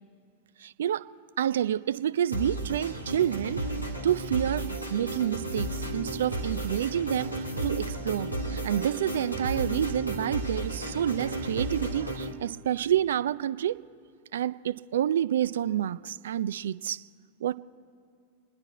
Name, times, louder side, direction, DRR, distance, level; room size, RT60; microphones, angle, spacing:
voice 1, 0.6-1.1 1.4-3.6 4.0-13.8 14.3-17.0 17.4-17.6, right 10 dB, 60° right, 0.4 m, -28 dB
sound 1, 2.3-12.3, right 1 dB, 90° left, 1.5 m, -33 dB
29.0 x 10.5 x 4.2 m
figure-of-eight pair, 90°, 0 cm